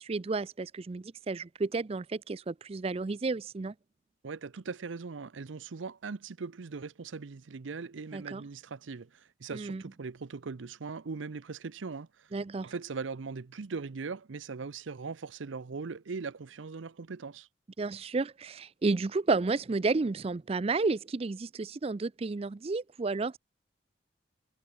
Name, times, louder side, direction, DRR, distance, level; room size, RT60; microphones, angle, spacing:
voice 1, 0.0-3.7 8.1-8.4 9.5-9.8 12.3-12.7 17.8-23.4, right 3 dB, 30° right, 0.4 m, -31 dB
voice 2, 4.2-12.3 12.6-17.5, right 4 dB, 90° right, 0.6 m, -40 dB
head